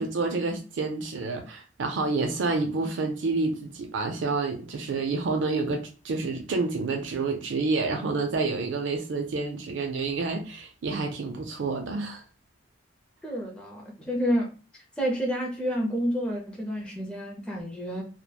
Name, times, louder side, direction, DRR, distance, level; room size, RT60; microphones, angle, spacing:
voice 1, 0.0-12.2, right 3 dB, 70° right, 0.4 m, -29 dB
voice 2, 13.2-14.5 15.0-18.0, equal, 5° left, 0.5 m, -29 dB
2.9 x 2.1 x 2.2 m
head